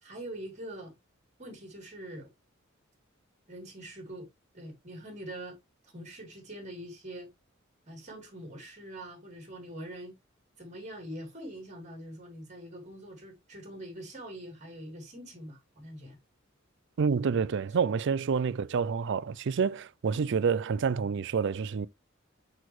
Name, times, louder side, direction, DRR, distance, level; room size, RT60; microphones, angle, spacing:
voice 1, 0.0-0.9 1.4-2.3 3.5-4.3 4.5-5.6 5.8-7.3 7.9-10.2 10.6-16.2, right 1 dB, 35° right, 3.3 m, -44 dB
voice 2, 17.0-21.9, right 6 dB, 60° right, 0.4 m, -28 dB
6.3 x 6.1 x 3.1 m
head